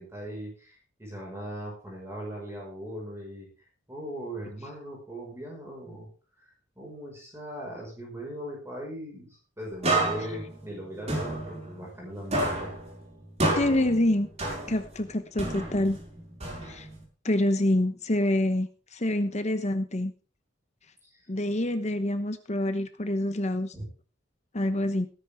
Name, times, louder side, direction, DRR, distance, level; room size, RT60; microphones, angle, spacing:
voice 1, 0.0-3.5 3.9-6.1 6.8-12.7 23.7-23.8, equal, 15° right, -3 dB, 5.3 m, -39 dB
sound 1, 9.8-12.1 12.3-15.0 15.4-17.0, right 2 dB, 35° right, 5.4 m, -30 dB
voice 2, 13.6-14.3 14.7-16.0 16.6-16.9 17.2-20.1 21.3-23.7 24.5-25.1, left 1 dB, 35° left, 9 dB, 1.1 m, -26 dB
18.5 x 10.0 x 3.6 m, 0.36 s
head